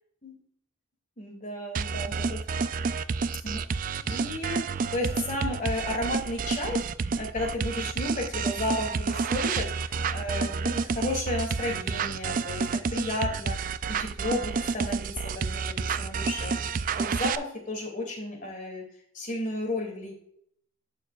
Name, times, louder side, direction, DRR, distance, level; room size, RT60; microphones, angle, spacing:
voice 1, 1.2-2.4 3.4-3.6 4.0-6.8 7.2-13.6 13.9-16.7 17.0-18.8 19.1-20.1, left 1 dB, 40° left, 2 dB, 2.5 m, -33 dB
sound 1, 1.7-17.4, right 5 dB, 40° right, 0.3 m, -29 dB
11.5 x 7.1 x 2.4 m, 0.67 s
head